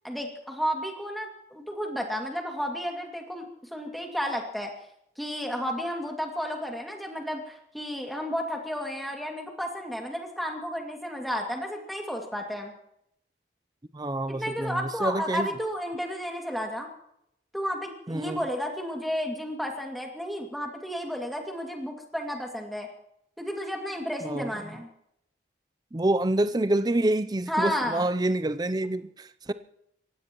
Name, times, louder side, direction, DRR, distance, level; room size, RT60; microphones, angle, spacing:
voice 1, 0.0-4.7 5.2-12.7 14.3-16.9 17.5-22.9 23.4-24.9 27.5-28.1, equal, ahead, 2.3 m, -32 dB
voice 2, 13.9-15.5 18.1-18.4 24.2-24.8 25.9-29.5, right 1 dB, 20° right, 0.5 m, -27 dB
30.0 x 16.0 x 3.0 m
head